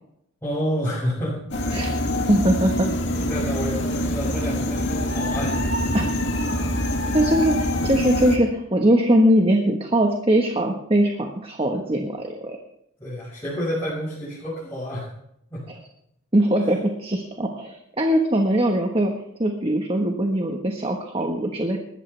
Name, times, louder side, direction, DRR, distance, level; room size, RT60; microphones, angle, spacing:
voice 1, 0.4-1.4 1.6-1.9 2.1-2.3 3.1-5.6 5.9-6.1 6.7-6.9 13.0-15.1 15.5-15.6 16.6-16.7, equal, 10° left, -10 dB, 6.4 m, -29 dB
sound 1, 1.5-8.4, left 1 dB, 55° left, 2.4 m, -25 dB
voice 2, 1.7-2.0 2.3-3.0 5.9-6.1 7.1-12.6 15.7-15.8 16.3-19.1 19.4-21.8, right 1 dB, 25° right, 3 dB, 1.4 m, -21 dB
20.5 x 14.0 x 3.4 m, 0.77 s
head